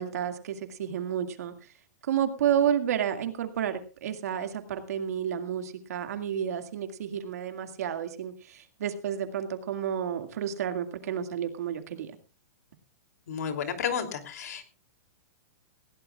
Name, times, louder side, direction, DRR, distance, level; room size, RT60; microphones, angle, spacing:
voice 1, 0.0-1.5 2.1-12.1, right 9 dB, 65° right, 7 dB, 2.1 m, -31 dB
voice 2, 13.3-14.6, left 7 dB, 70° left, 6 dB, 3.0 m, -32 dB
20.0 x 16.5 x 2.4 m, 0.32 s
hypercardioid pair, 165°, 9 cm